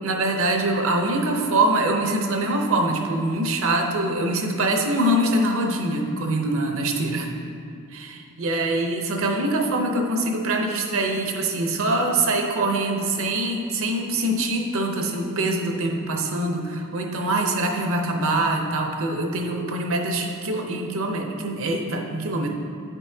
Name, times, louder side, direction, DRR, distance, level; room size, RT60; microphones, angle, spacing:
voice 1, 0.0-7.3 7.9-22.5, right 2 dB, 65° right, 2 dB, 0.7 m, -24 dB
9.2 x 5.4 x 2.7 m, 2.4 s
head